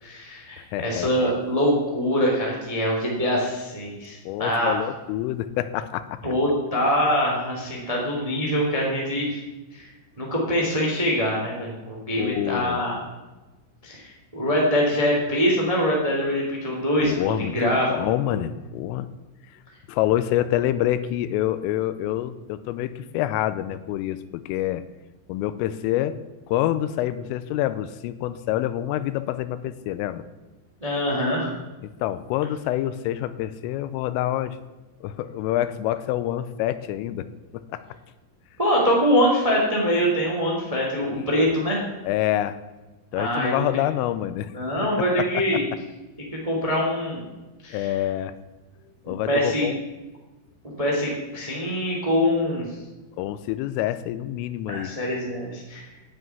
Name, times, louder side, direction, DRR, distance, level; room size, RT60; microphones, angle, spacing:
voice 1, 0.0-4.7 6.2-9.4 9.7-9.9 10.2-13.0 13.8-17.9 18.3-18.4 30.8-31.5 38.6-41.8 43.1-43.6 44.5-45.6 46.3-47.2 47.6-47.9 49.0-49.7 50.6-52.7 54.7-55.8, equal, 15° right, -2 dB, 1.1 m, -24 dB
voice 2, 0.6-1.3 4.2-6.2 12.2-12.8 17.0-19.1 19.9-24.9 25.3-26.2 26.5-30.3 31.8-34.6 35.0-37.3 37.5-37.8 41.1-41.2 42.0-42.6 43.1-44.5 45.2-45.6 47.7-48.3 49.1-49.8 53.2-54.9, left 13 dB, 85° left, 13 dB, 3.2 m, -27 dB
10.0 x 7.6 x 9.5 m, 1.1 s
omnidirectional pair, 5.9 m